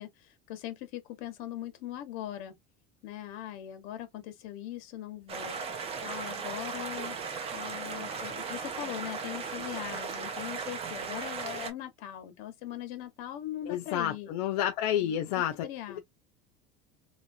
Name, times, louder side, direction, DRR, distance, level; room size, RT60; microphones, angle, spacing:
voice 1, 0.0-2.6 3.0-7.2 7.5-14.3 15.0-16.0, left 12 dB, 70° left, 1.2 m, -41 dB
sound 1, 5.3-11.7, right 5 dB, 30° right, 0.9 m, -37 dB
voice 2, 13.7-15.7 15.9-16.0, left 11 dB, 90° left, 0.6 m, -30 dB
3.0 x 2.7 x 2.6 m
cardioid pair, 145°, 20 cm